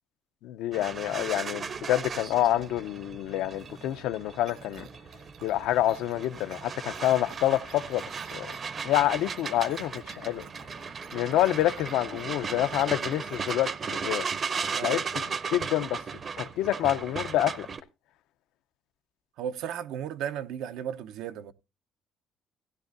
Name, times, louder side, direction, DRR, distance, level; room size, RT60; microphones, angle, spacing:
voice 1, 0.4-4.9 5.4-8.0 8.3-8.5 8.8-10.4 11.1-14.3 14.8-16.0 16.4-17.7, left 13 dB, 90° left, 0.6 m, -27 dB
sound 1, 0.7-17.8, right 5 dB, 35° right, 0.7 m, -36 dB
sound 2, 4.5-13.5, right 7 dB, 70° right, 2.0 m, -52 dB
voice 2, 19.4-21.5, right 9 dB, 85° right, 0.8 m, -35 dB
16.5 x 10.5 x 2.6 m
cardioid pair, 145°, 0 cm